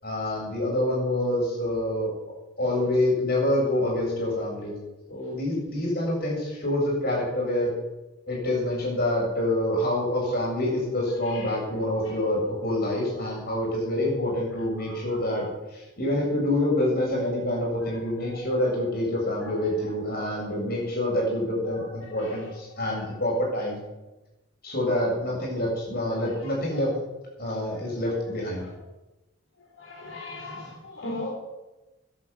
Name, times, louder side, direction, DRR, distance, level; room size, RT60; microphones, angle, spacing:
voice 1, 0.0-2.1 2.6-4.8 5.1-7.7 8.3-23.8 24.6-26.9 27.4-28.7, left 1 dB, 50° left, -3 dB, 7.4 m, -26 dB
voice 2, 29.8-31.3, left 2 dB, 75° left, -3 dB, 3.8 m, -36 dB
13.0 x 10.5 x 8.6 m, 1.1 s
head